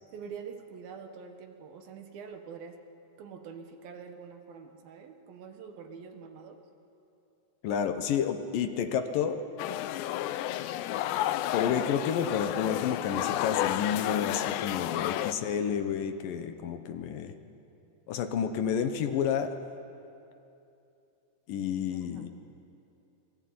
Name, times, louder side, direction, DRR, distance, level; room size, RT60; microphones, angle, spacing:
voice 1, 0.1-2.8 3.2-6.6 15.0-15.1 21.9-22.3, right 6 dB, 65° right, 5 dB, 3.1 m, -45 dB
voice 2, 7.6-9.4 11.5-17.3 18.1-19.5 21.5-22.3, left 8 dB, 65° left, 8 dB, 2.5 m, -30 dB
sound 1, 9.6-15.3, left 13 dB, 85° left, 2.9 m, -31 dB
29.0 x 20.5 x 9.6 m, 2.8 s
omnidirectional pair, 4.9 m